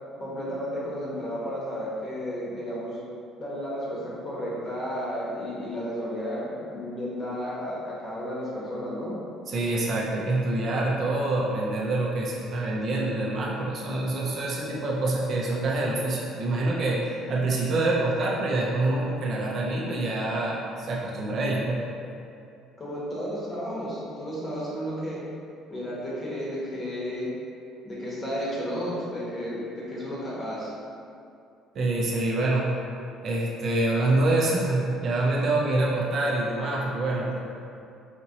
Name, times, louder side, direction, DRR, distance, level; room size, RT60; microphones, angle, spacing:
voice 1, 0.2-3.0 3.4-9.1 22.8-25.2 25.7-27.3 27.8-30.7, equal, 25° left, -6 dB, 1.0 m, -32 dB
voice 2, 9.5-21.8 31.7-32.7 33.2-37.4, right 2 dB, 40° right, -3 dB, 0.5 m, -26 dB
5.0 x 2.9 x 2.8 m, 2.5 s
cardioid pair, 160°, 0 cm